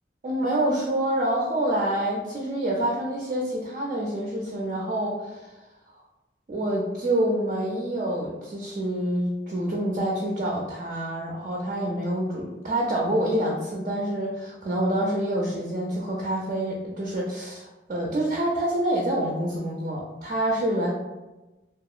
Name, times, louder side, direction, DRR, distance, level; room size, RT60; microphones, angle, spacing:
voice 1, 0.2-5.5 6.5-20.9, right 1 dB, 40° right, -2 dB, 0.4 m, -27 dB
2.8 x 2.3 x 2.4 m, 1.1 s
head